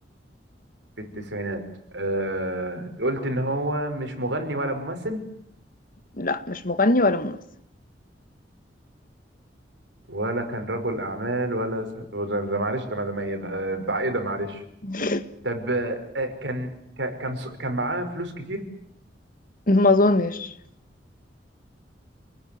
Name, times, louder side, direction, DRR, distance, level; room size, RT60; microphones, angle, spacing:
voice 1, 1.0-1.6 1.9-5.2 10.1-14.6 15.4-18.6, right 1 dB, 80° right, 5.6 m, -28 dB
voice 2, 6.2-7.4 14.8-15.2 19.7-20.5, left 2 dB, 50° left, 1.8 m, -21 dB
29.0 x 20.5 x 9.5 m
head